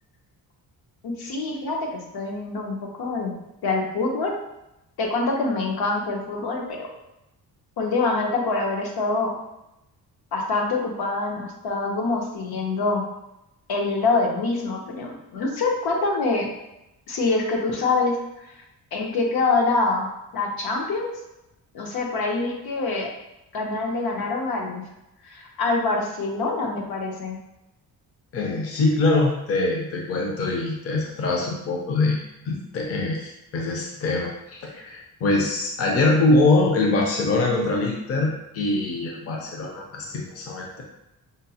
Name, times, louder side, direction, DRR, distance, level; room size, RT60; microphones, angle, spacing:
voice 1, 1.0-3.3 3.6-4.4 5.0-6.9 7.8-9.3 10.3-13.0 13.7-16.5 17.1-18.2 18.9-20.1 20.3-21.1 21.7-23.1 23.5-24.8 25.2-27.4, left 3 dB, 70° left, 0 dB, 0.8 m, -25 dB
voice 2, 28.3-40.8, left 2 dB, 40° left, -1 dB, 0.6 m, -23 dB
5.0 x 2.0 x 2.8 m, 0.89 s
cardioid pair, 150°, 39 cm